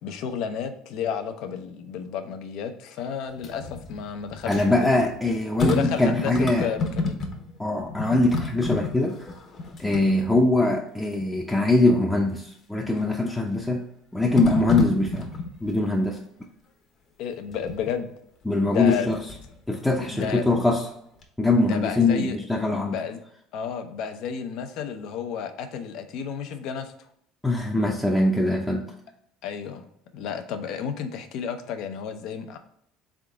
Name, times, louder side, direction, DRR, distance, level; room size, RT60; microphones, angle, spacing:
voice 1, 0.0-5.0 5.6-6.3 6.6-7.2 9.8-9.9 17.2-18.1 18.6-19.2 20.1-20.4 21.6-22.4 22.9-23.2 23.5-26.9 29.4-29.8 30.1-32.6, left 7 dB, 65° left, 8 dB, 0.6 m, -31 dB
sound 1, 3.3-7.6 7.8-10.7 11.2-11.3 12.9-13.4 14.4-15.9 17.5-17.9 18.8-19.6 20.0-21.0 21.2-21.3, left 4 dB, 45° left, 1.0 m, -31 dB
voice 2, 4.5-6.7 7.6-9.2 9.8-13.8 14.1-15.3 15.6-16.2 18.5-19.2 19.7-20.9 21.4-23.0 27.4-28.9, left 2 dB, 10° left, -1 dB, 0.6 m, -22 dB
3.7 x 3.6 x 3.5 m, 0.72 s
supercardioid pair, 80°, 0 cm